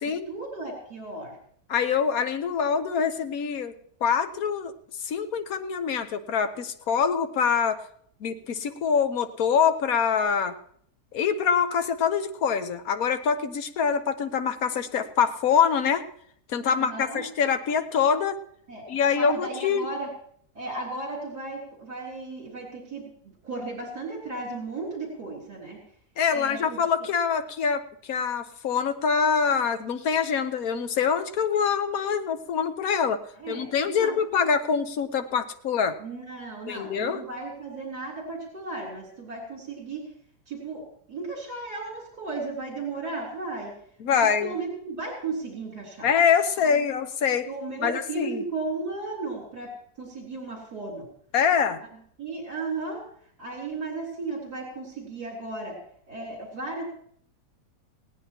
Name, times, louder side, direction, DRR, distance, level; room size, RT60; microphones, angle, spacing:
voice 1, 0.0-1.4 16.7-17.2 18.7-20.1 20.5-25.8 26.3-27.1 33.4-34.2 36.0-40.0 40.5-40.8 41.1-43.7 44.1-46.1 46.6-46.9 47.5-49.7 50.0-51.1 52.2-53.0 53.4-55.8 56.1-56.8, right 3 dB, 65° right, -2 dB, 4.0 m, -35 dB
voice 2, 1.7-3.7 4.0-4.7 5.0-7.8 8.2-10.5 11.1-16.0 16.5-18.4 18.9-19.9 26.2-27.8 28.1-36.0 36.7-37.2 44.0-44.6 46.0-47.5 47.8-48.4 51.3-51.8, left 6 dB, 60° left, 9 dB, 1.3 m, -25 dB
20.0 x 17.0 x 2.9 m, 0.64 s
omnidirectional pair, 1.8 m